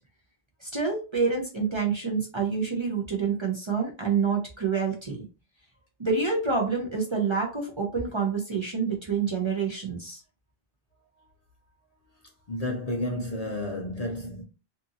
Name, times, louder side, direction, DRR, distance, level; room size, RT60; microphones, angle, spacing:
voice 1, 0.6-5.2 6.0-10.2, right 5 dB, 35° right, 0.6 m, -27 dB
voice 2, 12.5-14.4, left 1 dB, 45° left, 0.6 m, -31 dB
2.6 x 2.5 x 2.6 m
omnidirectional pair, 1.0 m